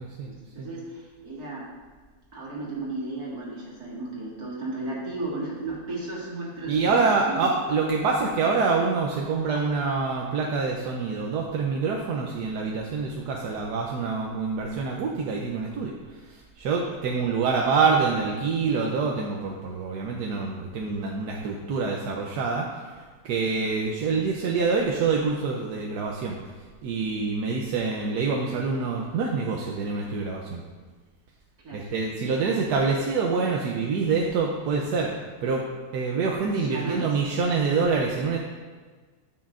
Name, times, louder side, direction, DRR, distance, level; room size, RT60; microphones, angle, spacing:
voice 1, 0.2-1.7 2.3-7.6 31.6-31.9 36.5-37.1, right 2 dB, 75° right, -5 dB, 2.5 m, -34 dB
voice 2, 6.7-15.9 16.3-26.4 26.8-30.6 31.7-35.1 35.4-35.6 35.9-38.4, right 4 dB, 90° right, -1 dB, 1.3 m, -26 dB
12.0 x 5.9 x 2.5 m, 1.4 s
omnidirectional pair, 1.7 m